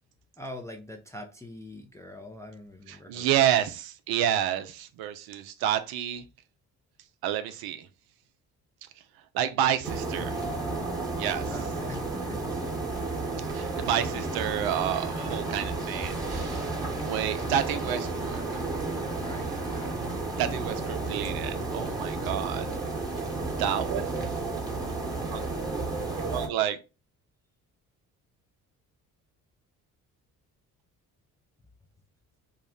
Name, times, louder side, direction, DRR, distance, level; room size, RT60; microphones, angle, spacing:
voice 1, 0.4-3.5 11.5-12.4 19.1-20.0, left 1 dB, 5° left, 0.4 m, -43 dB
voice 2, 2.9-6.2 7.2-7.9 9.3-10.4 11.1-11.5 13.5-16.7 17.0-18.7 20.4-22.7 23.6-24.0 25.3-25.4 26.3-26.8, right 10 dB, 55° right, 0.5 m, -29 dB
sound 1, 9.8-26.5, right 3 dB, 10° right, 0.9 m, -32 dB
2.4 x 2.0 x 3.6 m
hypercardioid pair, 50°, 44 cm